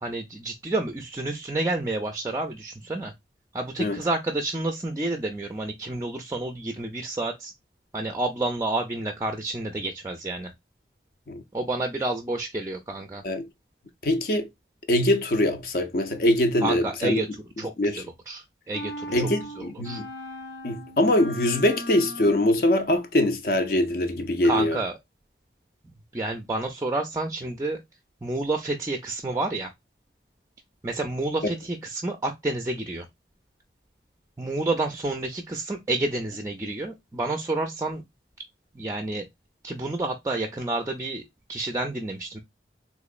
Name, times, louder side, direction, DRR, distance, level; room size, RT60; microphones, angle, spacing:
voice 1, 0.0-3.1 3.5-7.5 7.9-10.5 11.5-13.2 16.6-17.3 17.6-19.3 19.6-20.0 24.4-24.9 25.8-27.8 28.2-29.7 30.8-33.1 34.4-38.0 38.7-39.3 39.6-41.2 41.5-42.4, right 2 dB, 15° right, 0.4 m, -29 dB
voice 2, 14.0-14.5 14.9-17.2 17.8-18.0 19.1-20.1 20.6-24.8, left 1 dB, 50° left, 0.5 m, -23 dB
sound 1, 18.7-22.6, equal, 85° left, 1.0 m, -38 dB
3.6 x 3.0 x 2.3 m
head